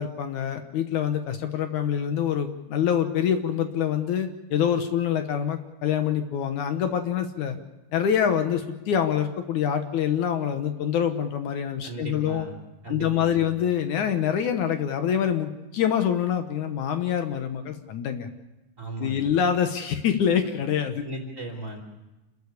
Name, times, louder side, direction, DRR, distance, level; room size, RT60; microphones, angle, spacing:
voice 1, 0.0-7.6 7.9-12.5 12.9-18.3 19.0-21.0, left 8 dB, 70° left, 7 dB, 2.4 m, -25 dB
voice 2, 11.8-12.5 12.8-13.5 18.8-19.4 21.0-21.8, right 1 dB, 25° right, 3 dB, 3.2 m, -36 dB
27.5 x 14.0 x 8.3 m, 1.0 s
omnidirectional pair, 3.7 m